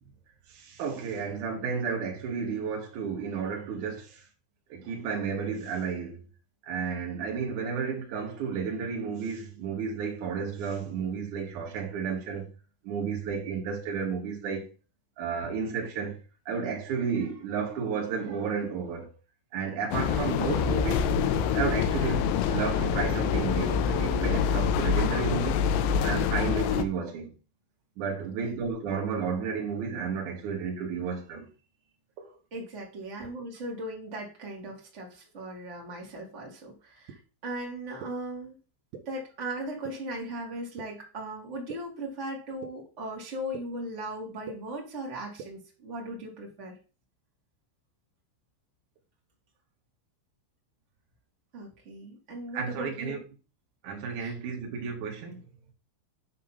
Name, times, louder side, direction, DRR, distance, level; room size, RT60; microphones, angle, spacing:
voice 1, 0.5-4.2 4.7-6.2 6.7-12.5 12.8-14.7 15.2-19.1 19.5-21.1 21.5-25.6 26.0-27.3 28.0-31.5 32.2-32.3 52.5-53.2 53.8-55.4, right 6 dB, 55° right, 2.5 m, -32 dB
sound 1, 19.9-26.8, left 7 dB, 80° left, 2.6 m, -26 dB
voice 2, 32.5-38.5 39.0-46.8 51.5-53.2 54.2-54.4, right 1 dB, 30° right, 1.2 m, -38 dB
sound 2, 37.1-37.2 38.0-38.1 38.9-39.0 39.8-39.9 40.8-40.9 41.7-41.8 42.6-42.7 43.5-43.6 44.5-44.6 45.4-45.5, right 7 dB, 70° right, 2.3 m, -39 dB
9.3 x 3.5 x 5.7 m
omnidirectional pair, 5.6 m